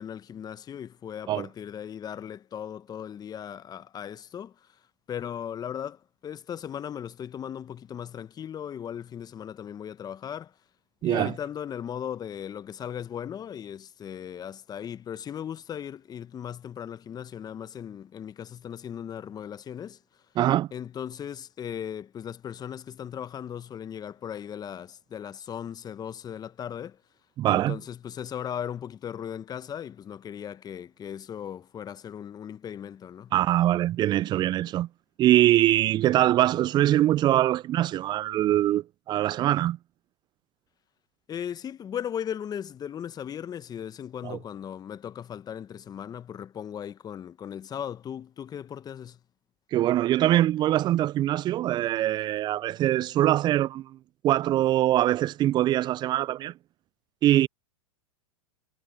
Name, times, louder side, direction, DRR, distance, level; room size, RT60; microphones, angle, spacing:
voice 1, 0.0-4.8 5.1-10.6 11.0-20.0 20.7-27.0 27.4-33.3 41.3-49.2, left 9 dB, 25° left, 1.2 m, -37 dB
voice 2, 11.0-11.3 20.4-20.7 27.4-27.8 33.3-34.9 35.2-39.8 44.2-44.4 49.7-54.0 54.2-56.5 57.2-57.5, right 13 dB, 25° right, 0.4 m, -23 dB
hypercardioid pair, 105°, 17 cm